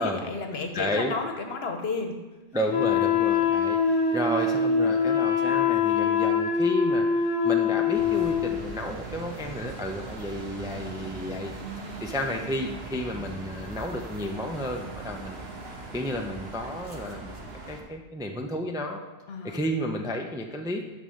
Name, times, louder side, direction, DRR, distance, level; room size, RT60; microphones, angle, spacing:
voice 1, 0.0-2.2 19.3-19.6, left 4 dB, 65° left, 4 dB, 1.2 m, -32 dB
voice 2, 0.7-1.1 2.5-19.0 19.4-20.8, equal, 5° right, 2 dB, 0.4 m, -32 dB
Wind instrument woodwind instrument, 2.7-8.6, left 6 dB, 30° left, 0.9 m, -24 dB
sound 1, 7.9-17.8, right 3 dB, 60° right, 1.3 m, -40 dB
9.3 x 4.2 x 6.4 m, 1.1 s
omnidirectional pair, 1.2 m